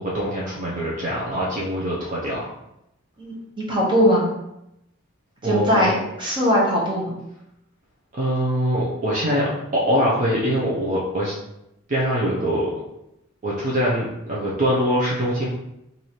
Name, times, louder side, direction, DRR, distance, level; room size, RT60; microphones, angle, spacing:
voice 1, 0.0-2.5 5.4-5.9 8.1-11.3 11.9-12.7 13.4-15.5, equal, 40° right, -5 dB, 0.7 m, -23 dB
voice 2, 3.2-4.2 5.4-7.1, equal, 25° right, -4 dB, 1.1 m, -20 dB
3.1 x 2.7 x 4.2 m, 0.84 s
head